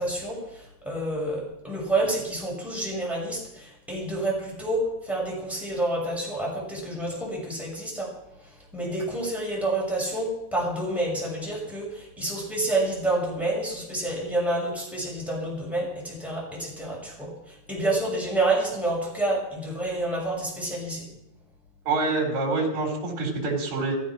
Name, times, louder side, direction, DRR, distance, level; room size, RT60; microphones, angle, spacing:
voice 1, 0.0-8.1 8.7-21.1, right 2 dB, ahead, -3 dB, 5.9 m, -28 dB
voice 2, 21.8-24.0, right 3 dB, 45° right, 0 dB, 5.1 m, -26 dB
15.5 x 15.0 x 6.1 m, 0.88 s
omnidirectional pair, 4.5 m